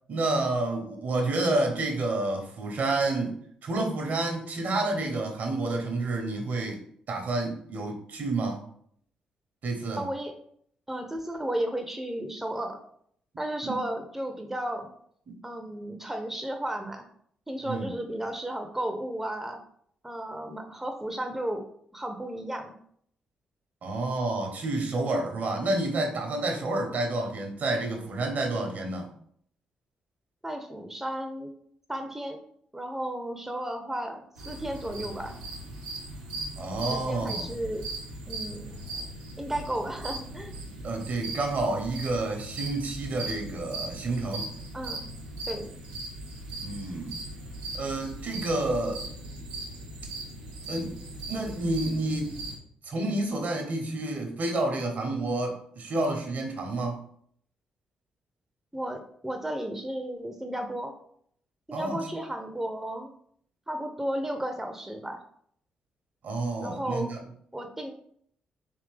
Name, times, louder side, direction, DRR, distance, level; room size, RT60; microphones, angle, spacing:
voice 1, 0.1-3.4 3.6-6.8 7.1-8.6 9.6-10.0 13.6-13.8 15.3-15.4 17.6-17.9 23.8-29.1 36.6-37.6 40.8-44.5 46.6-47.2 47.7-49.0 50.7-51.0 51.3-52.3 52.8-57.0 61.7-62.1 66.2-67.2, right 2 dB, 55° right, 2 dB, 1.1 m, -29 dB
voice 2, 10.0-10.3 10.9-12.8 13.4-14.9 15.4-17.0 17.5-19.6 20.0-21.6 21.9-22.7 30.4-31.5 31.9-32.4 32.7-35.4 36.9-37.9 38.3-38.8 39.4-40.5 44.7-45.1 45.5-45.8 58.7-60.9 61.7-63.1 63.7-65.2 66.6-67.1 67.5-67.9, right 1 dB, 10° right, 4 dB, 0.7 m, -33 dB
sound 1, 34.4-52.6, right 2 dB, 90° right, 0.7 m, -39 dB
3.5 x 3.1 x 3.3 m, 0.63 s
hypercardioid pair, 40°, 3 cm